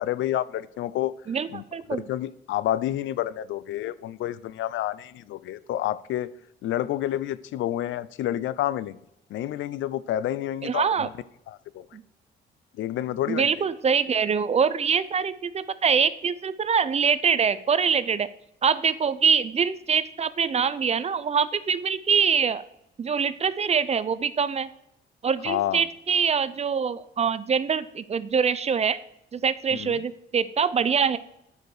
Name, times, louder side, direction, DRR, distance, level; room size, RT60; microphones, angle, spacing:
voice 1, 0.0-1.1 1.5-1.6 2.0-6.3 6.6-9.0 9.3-11.1 11.5-11.8 12.8-13.5 25.5-25.9 29.7-30.0, left 13 dB, 75° left, 0.4 m, -29 dB
voice 2, 1.3-2.0 10.6-11.1 11.9-12.0 13.3-18.3 18.6-22.6 23.0-24.7 25.2-29.0 29.3-31.2, right 6 dB, 35° right, 0.5 m, -24 dB
9.2 x 4.6 x 4.7 m
cardioid pair, 90°, 20 cm